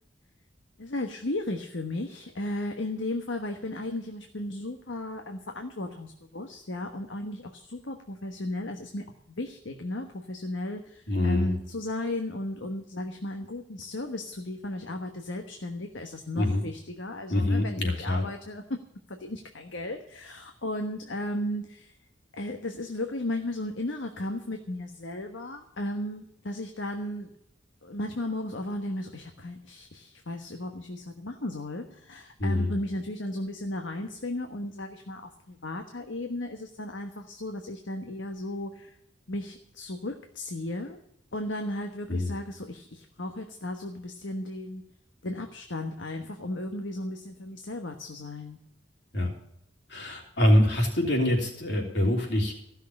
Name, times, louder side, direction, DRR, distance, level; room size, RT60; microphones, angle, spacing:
voice 1, 0.8-18.6 19.1-22.0 22.3-27.3 27.8-39.0 39.3-41.0 41.3-44.8 45.2-48.6, left 1 dB, 75° left, 4 dB, 1.3 m, -35 dB
voice 2, 11.1-11.6 16.3-16.6 17.3-18.2 32.4-32.7 42.1-42.3 49.1-49.3 49.9-52.5, left 1 dB, 60° left, 1 dB, 3.4 m, -25 dB
15.5 x 6.6 x 8.6 m, 0.78 s
head